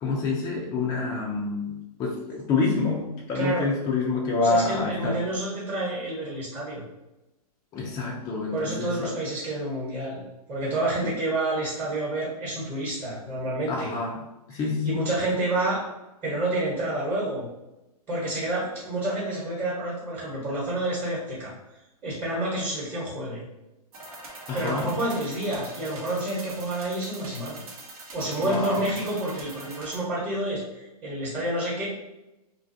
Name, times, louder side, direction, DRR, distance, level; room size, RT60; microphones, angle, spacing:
voice 1, 0.0-5.2 7.7-9.1 13.7-14.2 14.5-14.9 24.5-24.9 28.4-28.9, left 3 dB, 15° left, -2 dB, 0.3 m, -27 dB
voice 2, 3.3-3.7 4.4-6.8 8.5-10.2 10.5-13.9 14.5-15.8 16.2-17.5 18.1-21.5 22.0-23.4 24.5-27.6 28.1-31.9, right 1 dB, 25° right, -5 dB, 1.0 m, -29 dB
sound 1, 23.9-30.0, right 2 dB, 60° right, 0.8 m, -43 dB
2.5 x 2.2 x 2.6 m, 0.97 s
hypercardioid pair, 125°, 20 cm